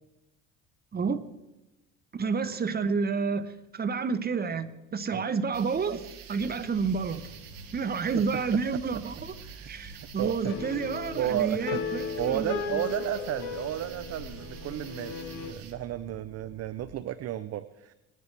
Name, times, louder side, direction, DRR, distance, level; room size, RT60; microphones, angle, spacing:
voice 1, 2.1-3.5 3.8-7.3 7.7-9.3 9.7-12.6, right 5 dB, 25° right, 12 dB, 1.1 m, -29 dB
sound 1, 5.5-15.7, right 6 dB, 85° right, 1.5 m, -47 dB
sound 2, 6.3-17.0, right 2 dB, 10° left, 5.7 m, -50 dB
voice 2, 10.2-10.5 11.2-11.8 12.2-17.9, right 12 dB, 45° right, 14 dB, 0.6 m, -33 dB
sound 3, 10.4-15.5, left 6 dB, 70° left, 1.5 m, -36 dB
19.0 x 11.0 x 3.4 m, 1.0 s
supercardioid pair, 80°, 36 cm